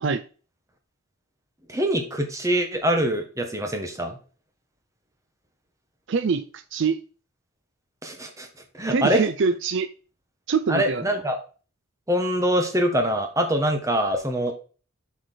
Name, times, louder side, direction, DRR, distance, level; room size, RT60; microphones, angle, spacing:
voice 1, 1.7-4.2 8.0-8.5 8.7-9.3 10.7-11.4 12.1-14.5, equal, 15° right, 5 dB, 1.3 m, -24 dB
voice 2, 6.1-7.0 8.9-9.9 10.5-11.2, right 5 dB, 55° right, 12 dB, 0.4 m, -24 dB
7.8 x 4.9 x 4.0 m, 0.37 s
head